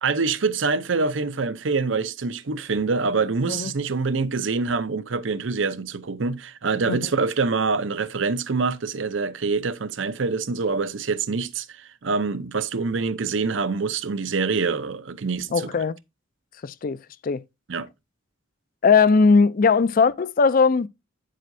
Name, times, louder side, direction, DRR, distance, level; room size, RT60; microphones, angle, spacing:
voice 1, 0.0-15.7 17.7-17.9, right 4 dB, 70° right, 0.7 m, -25 dB
voice 2, 15.5-16.0 16.6-17.0 17.2-17.4 18.8-20.9, left 5 dB, 45° left, 0.4 m, -19 dB
9.2 x 7.5 x 2.6 m
head